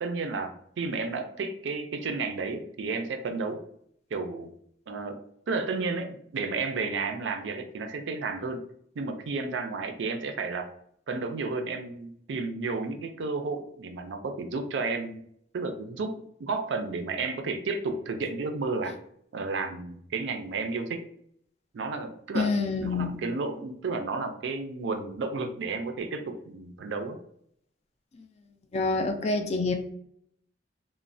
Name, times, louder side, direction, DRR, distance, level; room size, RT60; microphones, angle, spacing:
voice 1, 0.0-3.6 4.1-4.5 4.9-5.2 5.5-8.6 9.0-10.7 11.1-15.2 15.5-16.1 16.4-18.9 19.3-21.0 21.7-22.5 22.8-27.2, right 4 dB, 70° right, 0.4 m, -32 dB
voice 2, 22.3-23.1 28.7-29.7, left 3 dB, 35° left, 0.3 m, -26 dB
3.0 x 2.1 x 2.5 m
head